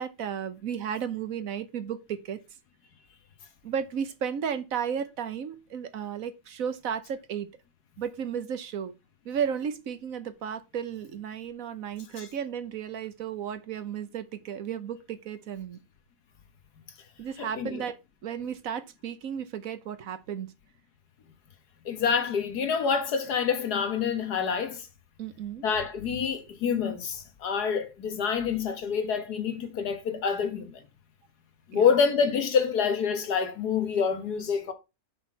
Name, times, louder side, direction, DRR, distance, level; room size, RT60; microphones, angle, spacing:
voice 1, 0.0-2.4 3.6-7.5 8.0-8.9 9.2-15.8 17.2-20.5 25.2-25.6 31.7-31.9, right 8 dB, 65° right, 1.3 m, -34 dB
voice 2, 17.4-17.8 21.9-24.9 25.6-30.8 31.7-34.7, left 6 dB, 85° left, 1.9 m, -27 dB
6.2 x 5.9 x 5.7 m
omnidirectional pair, 1.6 m